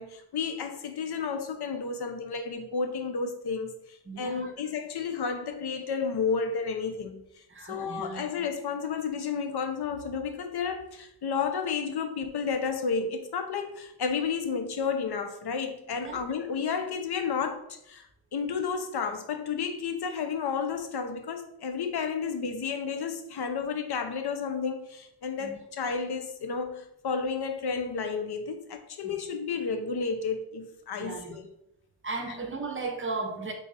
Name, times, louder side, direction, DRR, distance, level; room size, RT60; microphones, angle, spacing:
voice 1, 0.0-7.2 7.7-18.1 18.3-31.5 32.3-32.4, left 5 dB, 55° left, 0.7 m, -32 dB
voice 2, 4.1-4.5 7.5-8.2 16.0-16.2 25.4-25.6 31.0-31.3 32.0-33.5, right 3 dB, 25° right, 0.8 m, -35 dB
4.0 x 2.4 x 4.0 m
wide cardioid pair, 90°, 48 cm